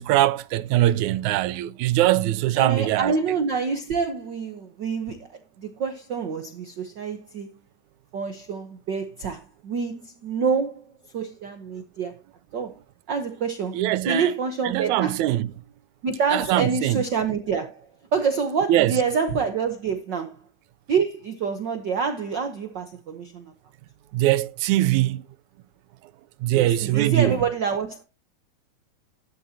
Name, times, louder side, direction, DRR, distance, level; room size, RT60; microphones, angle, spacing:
voice 1, 0.0-3.1 13.7-14.3 14.6-15.5 16.3-17.0 18.7-19.0 24.1-25.3 26.4-27.4, right 14 dB, 85° right, 2.1 m, -22 dB
voice 2, 2.6-7.5 8.1-10.8 11.1-12.2 12.5-12.8 13.1-15.2 16.0-20.4 20.9-23.5 26.5-28.0, right 5 dB, 65° right, 1.1 m, -27 dB
13.0 x 11.0 x 2.8 m
omnidirectional pair, 3.3 m